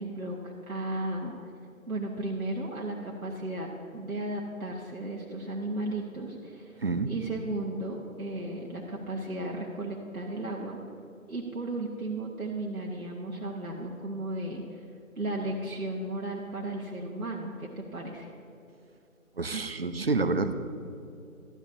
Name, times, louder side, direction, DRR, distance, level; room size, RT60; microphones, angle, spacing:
voice 1, 0.0-1.3 1.9-6.8 7.1-10.8 11.3-14.8 15.2-18.3, right 1 dB, 85° right, -3 dB, 1.4 m, -35 dB
voice 2, 6.8-7.1 19.4-20.5, right 3 dB, 45° right, 10 dB, 0.6 m, -28 dB
14.0 x 11.0 x 2.8 m, 2.7 s
figure-of-eight pair, 155°, 42 cm